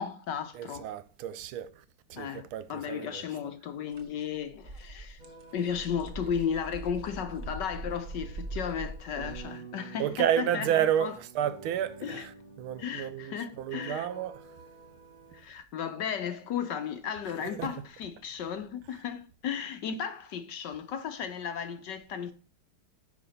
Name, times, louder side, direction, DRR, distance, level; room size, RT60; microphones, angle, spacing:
voice 1, 0.0-0.9 2.1-5.2 5.5-11.2 12.0-12.3 12.8-14.1 15.3-22.3, left 7 dB, 65° left, 1.2 m, -35 dB
voice 2, 0.5-1.7 2.1-3.2 10.0-12.3 12.6-14.3 17.4-17.7, right 10 dB, 80° right, 1.5 m, -30 dB
sound 1, 3.9-4.0 4.4-9.4, right 2 dB, 45° right, 1.3 m, -41 dB
sound 2, 5.2-15.4, right 4 dB, 25° right, 1.5 m, -50 dB
9.4 x 5.0 x 4.1 m
omnidirectional pair, 2.4 m